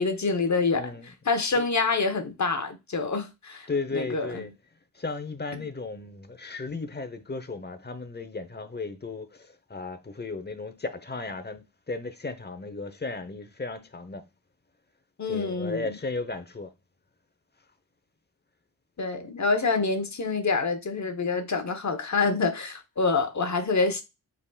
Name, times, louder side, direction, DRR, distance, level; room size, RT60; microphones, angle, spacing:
voice 1, 0.0-0.8 1.3-3.7 3.9-4.4 15.2-15.9 19.0-24.0, left 4 dB, 50° left, 1.0 m, -26 dB
voice 2, 0.7-1.1 1.6-1.7 3.7-4.5 4.9-14.2 15.3-16.7, left 3 dB, 25° left, 0.9 m, -35 dB
5.3 x 4.2 x 2.3 m
cardioid pair, 60°, 37 cm